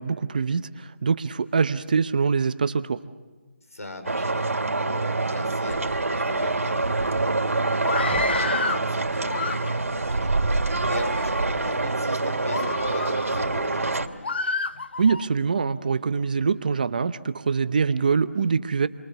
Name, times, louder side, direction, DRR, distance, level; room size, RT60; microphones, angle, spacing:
voice 1, 0.0-3.0 15.0-18.9, right 5 dB, 35° right, 12 dB, 0.9 m, -24 dB
voice 2, 3.7-7.5 8.0-10.3 10.9-14.1, left 1 dB, 90° left, 7 dB, 4.9 m, -39 dB
sound 1, 4.0-14.1, right 2 dB, 75° right, 2.8 m, -25 dB
Screaming, 7.8-8.9 9.3-10.0 10.7-11.3 11.8-12.0 12.5-13.4 14.2-15.3, left 4 dB, 45° left, 0.8 m, -30 dB
30.0 x 23.5 x 7.0 m, 1.3 s
figure-of-eight pair, 165°, 8 cm